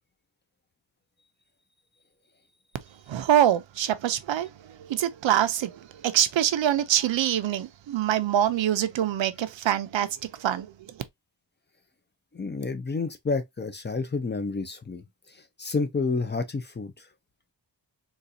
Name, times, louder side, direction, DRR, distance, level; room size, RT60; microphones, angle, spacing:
voice 1, 3.1-10.9, right 10 dB, 80° right, 0.6 m, -25 dB
voice 2, 12.3-17.1, left 4 dB, 25° left, 0.4 m, -30 dB
4.0 x 2.4 x 2.5 m
wide cardioid pair, 130°, 44 cm